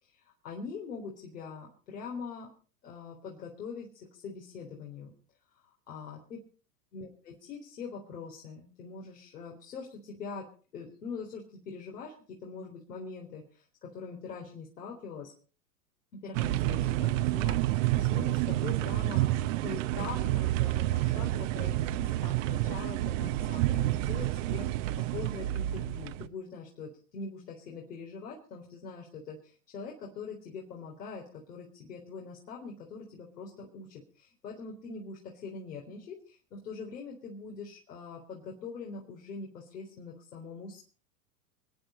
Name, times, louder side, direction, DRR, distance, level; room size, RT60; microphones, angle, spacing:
voice 1, 0.0-2.5 2.8-5.1 5.9-6.4 6.9-10.5 10.7-13.6 13.9-15.3 16.1-40.8, left 5 dB, 75° left, -1 dB, 4.0 m, -43 dB
sound 1, 16.3-26.3, right 15 dB, 55° right, 1.1 m, -29 dB
28.5 x 9.5 x 4.3 m, 0.41 s
hypercardioid pair, 100°, 47 cm